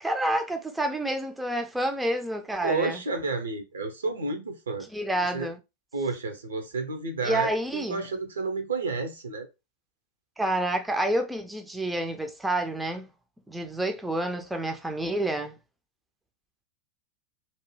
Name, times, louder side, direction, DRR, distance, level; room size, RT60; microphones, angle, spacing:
voice 1, 0.0-3.0 4.9-5.6 7.2-8.0 10.4-13.1 13.5-15.6, right 1 dB, 5° right, 0.4 m, -28 dB
voice 2, 2.6-4.9 5.3-5.5 5.9-9.5, right 3 dB, 70° right, 0.7 m, -31 dB
2.7 x 2.2 x 3.1 m
figure-of-eight pair, 90°, 0 cm